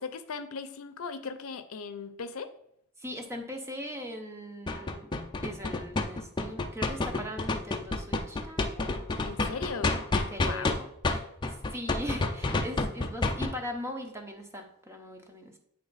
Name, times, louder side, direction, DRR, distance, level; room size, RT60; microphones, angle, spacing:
voice 1, 0.0-2.5 9.2-9.9 10.4-10.8, left 5 dB, 80° left, 9 dB, 0.6 m, -38 dB
voice 2, 3.0-5.1 5.4-9.3 10.3-11.3 11.7-15.6, equal, 15° right, 4 dB, 0.7 m, -40 dB
sound 1, 4.7-10.7 11.0-13.5, left 3 dB, 20° left, 0.5 m, -28 dB
8.8 x 3.3 x 4.0 m, 0.75 s
head